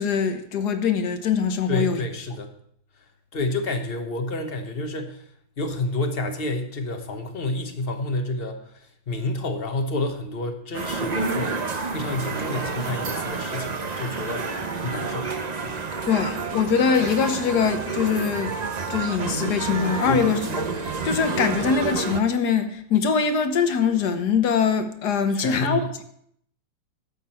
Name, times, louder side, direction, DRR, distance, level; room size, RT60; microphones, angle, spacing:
voice 1, 0.0-2.0 16.1-18.5 18.9-20.7 21.0-25.8, left 6 dB, 65° left, 1.5 m, -23 dB
voice 2, 1.7-2.5 3.3-5.2 5.6-11.6 11.9-15.3 15.6-15.8 20.0-20.3 25.3-25.9, left 2 dB, 35° left, 1.2 m, -29 dB
sound 1, 10.7-22.2, right 4 dB, 45° right, 0.5 m, -29 dB
12.5 x 8.3 x 4.4 m
omnidirectional pair, 2.0 m